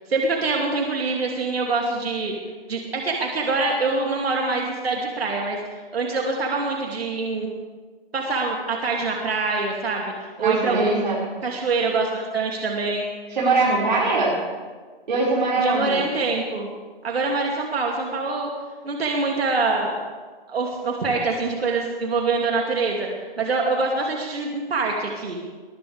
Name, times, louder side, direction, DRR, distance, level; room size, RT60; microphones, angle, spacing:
voice 1, 0.1-2.3 2.7-7.5 8.1-11.1 11.4-13.1 15.6-16.7 17.0-18.5 18.8-20.0 20.5-23.1 23.4-25.4, right 3 dB, 85° right, 0 dB, 2.9 m, -25 dB
voice 2, 10.4-11.2 13.3-14.3 15.1-16.0, right 3 dB, 55° right, -6 dB, 5.6 m, -21 dB
21.0 x 19.5 x 3.6 m, 1.4 s
hypercardioid pair, 175°, 30 cm